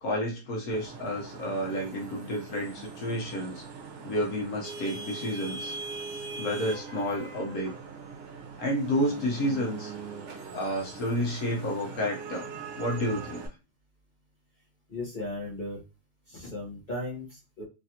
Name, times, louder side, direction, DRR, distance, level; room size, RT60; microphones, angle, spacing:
voice 1, 0.0-3.6 4.0-5.7 6.4-7.7 8.6-9.9 10.5-12.5 12.8-13.4, equal, 75° left, 0 dB, 1.4 m, -30 dB
Vehicle horn car horn honking / Traffic noise roadway noise, 0.7-13.5, right 4 dB, 60° right, 1.0 m, -41 dB
voice 2, 14.9-15.8 16.3-17.6, left 1 dB, 35° left, -5 dB, 1.0 m, -36 dB
3.3 x 2.4 x 2.7 m, 0.29 s
omnidirectional pair, 1.5 m